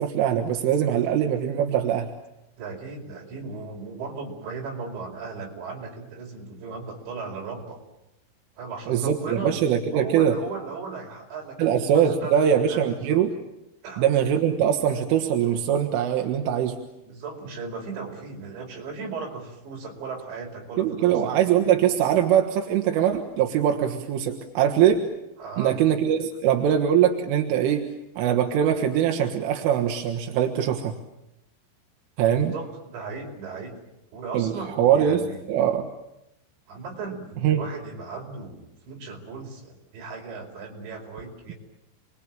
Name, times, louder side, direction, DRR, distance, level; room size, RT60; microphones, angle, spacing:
voice 1, 0.0-2.1 8.9-9.2 9.4-10.4 11.6-13.4 14.0-16.8 20.8-25.1 25.6-27.9 28.2-31.0 32.2-32.5 34.3-35.9 37.4-37.6, right 9 dB, 90° right, 3 dB, 4.1 m, -22 dB
voice 2, 2.6-7.8 8.6-9.6 9.9-12.3 12.7-13.2 13.8-14.0 17.0-21.4 25.4-25.8 32.5-33.7 34.1-35.4 36.7-41.5, right 4 dB, 65° right, 1 dB, 7.0 m, -37 dB
29.5 x 22.0 x 8.9 m, 0.91 s
omnidirectional pair, 5.6 m